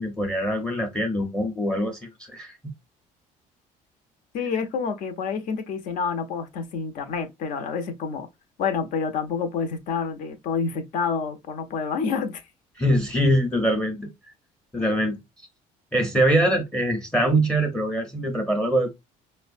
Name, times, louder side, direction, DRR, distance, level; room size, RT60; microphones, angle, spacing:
voice 1, 0.0-2.7 12.8-14.1 14.7-15.2 15.9-18.9, right 1 dB, 5° left, 0.7 m, -23 dB
voice 2, 4.3-8.3 8.6-12.4, left 5 dB, 65° left, 0.8 m, -28 dB
4.6 x 2.2 x 2.4 m
cardioid pair, 150°, 14 cm